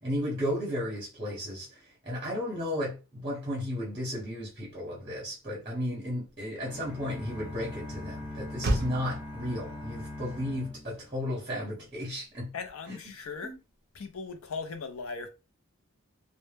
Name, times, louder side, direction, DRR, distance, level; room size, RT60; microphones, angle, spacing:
voice 1, 0.0-12.5 13.4-13.6, left 1 dB, 25° right, 0.8 m, -34 dB
Motor vehicle (road), 5.3-13.2, right 1 dB, 45° right, 0.4 m, -39 dB
sound 1, 6.6-11.6, left 1 dB, 20° left, 0.7 m, -42 dB
voice 2, 12.5-13.5 13.9-15.3, left 4 dB, 70° left, 0.5 m, -38 dB
2.1 x 2.1 x 3.2 m
head